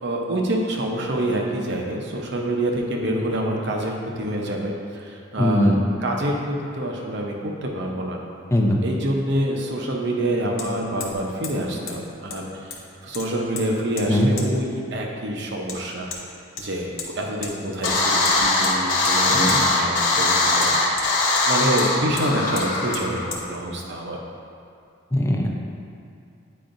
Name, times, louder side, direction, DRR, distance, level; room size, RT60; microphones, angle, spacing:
voice 1, 0.0-5.7 6.0-7.3 7.6-8.2 8.8-12.8 13.0-16.2 16.6-16.9 17.2-20.8 21.5-24.2, right 1 dB, 60° right, 0 dB, 0.8 m, -26 dB
voice 2, 5.4-5.8 8.5-8.8 14.1-14.3 19.3-19.6 25.1-25.5, left 1 dB, 15° left, 0 dB, 0.5 m, -20 dB
Hammer, 10.6-10.7 11.0-11.2 11.4-11.6 11.9-12.0 12.3-12.9 13.1-13.7 14.0-14.1 14.4-14.5 15.7-15.8 16.1-16.2 16.6-17.1 17.4-17.5 17.8-18.0 18.2-18.8 19.0-19.2 19.5-19.6 20.6-21.5 21.8-21.9 22.2-22.3 22.6-22.7 22.9-23.1 23.3-23.4, left 5 dB, 75° left, 0.9 m, -34 dB
sound 1, 17.8-23.3, left 2 dB, 40° left, 1.0 m, -21 dB
8.6 x 4.9 x 2.6 m, 2.4 s
head